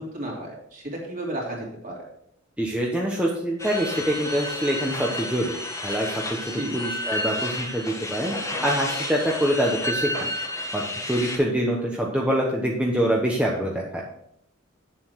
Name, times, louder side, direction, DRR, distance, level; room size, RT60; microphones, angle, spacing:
voice 1, 0.0-2.0 6.5-6.8, right 1 dB, 40° right, -2 dB, 3.1 m, -33 dB
voice 2, 2.6-5.5 5.8-6.1 6.7-8.3 8.6-10.3 10.7-14.0, equal, 5° right, -2 dB, 1.1 m, -25 dB
sound 1, 3.6-11.4, left 1 dB, 15° left, 1.5 m, -31 dB
8.8 x 7.4 x 4.6 m, 0.73 s
head